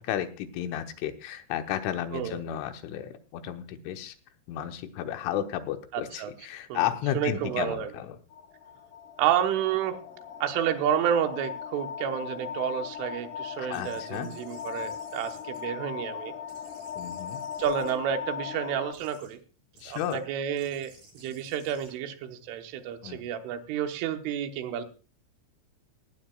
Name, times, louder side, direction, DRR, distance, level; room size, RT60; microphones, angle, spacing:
voice 1, 0.0-4.2 4.5-8.2 13.6-14.3 17.0-17.4 19.8-20.2 23.0-23.2, left 11 dB, 85° left, 7 dB, 3.6 m, -33 dB
voice 2, 5.9-6.3 6.7-6.9 7.2-7.9 9.2-10.0 10.4-16.3 17.6-19.4 19.9-24.8, right 9 dB, 85° right, 7 dB, 3.6 m, -30 dB
sound 1, 8.3-18.9, left 8 dB, 70° left, 2.0 m, -39 dB
sound 2, 13.7-16.1 16.5-18.4 18.9-19.3 19.7-20.2 20.5-23.0, right 2 dB, 40° right, 6.0 m, -55 dB
18.5 x 15.0 x 2.3 m, 0.35 s
omnidirectional pair, 5.5 m